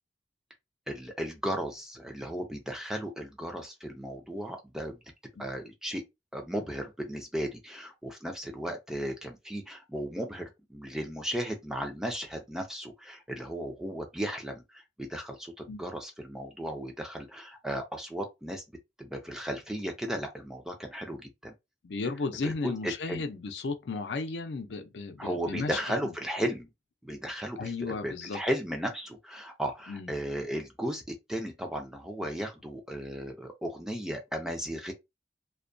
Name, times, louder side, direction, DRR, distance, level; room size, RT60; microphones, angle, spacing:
voice 1, 0.9-5.0 5.4-6.0 6.3-21.5 22.4-23.2 25.2-26.7 27.0-34.9, equal, 5° right, 0.4 m, -35 dB
voice 2, 21.8-25.8 27.6-28.4 29.9-30.1, left 4 dB, 90° left, 0.5 m, -34 dB
2.2 x 2.2 x 2.5 m
head